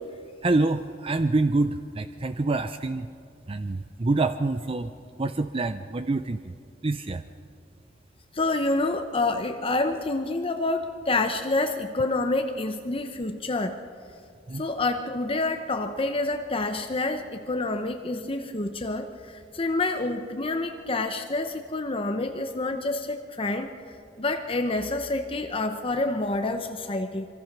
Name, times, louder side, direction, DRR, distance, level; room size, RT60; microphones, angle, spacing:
voice 1, 0.4-3.1 3.5-4.9 5.2-6.4 6.8-7.2 14.5-14.6, right 2 dB, 30° right, 10 dB, 0.5 m, -26 dB
voice 2, 8.3-13.8 14.5-19.1 19.5-23.7 24.2-27.3, left 2 dB, 30° left, 6 dB, 0.9 m, -28 dB
26.0 x 24.0 x 6.1 m, 2.4 s
head